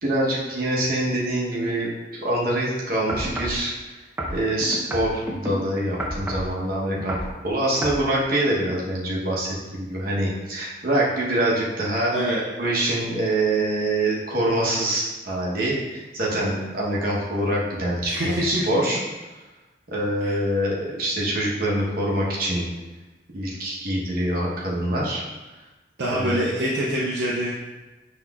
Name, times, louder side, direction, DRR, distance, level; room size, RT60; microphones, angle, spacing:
voice 1, 0.0-4.0 4.3-7.2 7.4-19.0 19.9-22.7 23.3-25.2 26.1-26.4, right 1 dB, 55° right, -4 dB, 0.9 m, -25 dB
sound 1, 3.1-3.6 4.2-5.5 6.0-6.5 6.9-7.3 7.8-8.0 8.7-8.8, right 1 dB, 10° right, 0.5 m, -30 dB
voice 2, 18.0-18.6 20.2-20.4 26.0-27.5, right 1 dB, 70° right, -5 dB, 0.6 m, -25 dB
5.7 x 3.0 x 2.3 m, 1.1 s
head